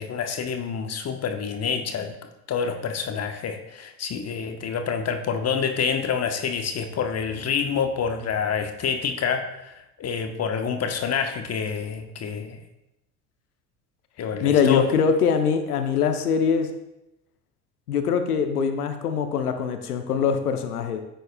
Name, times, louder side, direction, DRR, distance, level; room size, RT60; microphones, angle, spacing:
voice 1, 0.0-2.2 2.5-12.6 14.2-14.9, left 6 dB, 35° left, 6 dB, 1.0 m, -27 dB
voice 2, 14.4-16.7 17.9-21.0, left 6 dB, 85° left, 7 dB, 0.7 m, -23 dB
9.9 x 7.7 x 2.2 m, 0.90 s
hypercardioid pair, 70°, 44 cm